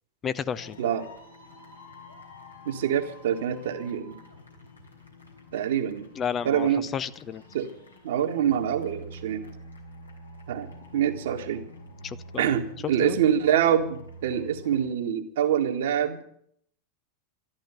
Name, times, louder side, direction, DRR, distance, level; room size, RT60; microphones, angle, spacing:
voice 1, 0.2-0.8 6.2-7.4 12.0-12.5 12.8-13.2, left 8 dB, 25° left, 14 dB, 0.7 m, -32 dB
sound 1, 0.5-14.8, right 1 dB, 80° left, 3.4 m, -47 dB
voice 2, 2.7-4.2 5.5-6.1 6.4-6.9 7.5-7.7 8.0-9.4 10.5-11.7 12.4-16.2, right 9 dB, 55° right, 6 dB, 1.8 m, -25 dB
13.0 x 12.0 x 8.3 m, 0.65 s
figure-of-eight pair, 90°, 0 cm